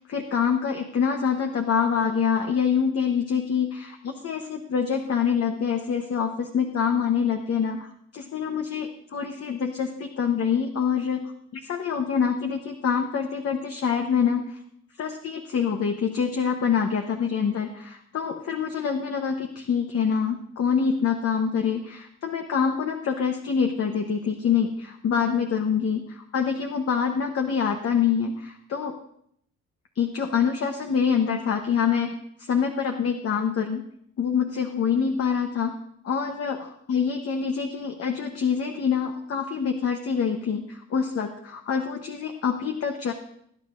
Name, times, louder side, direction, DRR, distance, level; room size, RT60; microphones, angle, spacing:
voice 1, 0.0-11.2 11.6-14.6 15.0-28.9 29.9-33.8 34.2-35.8 36.0-43.1, left 7 dB, 50° left, 4 dB, 1.0 m, -25 dB
19.0 x 9.6 x 2.6 m, 0.71 s
cardioid pair, 90°, 30 cm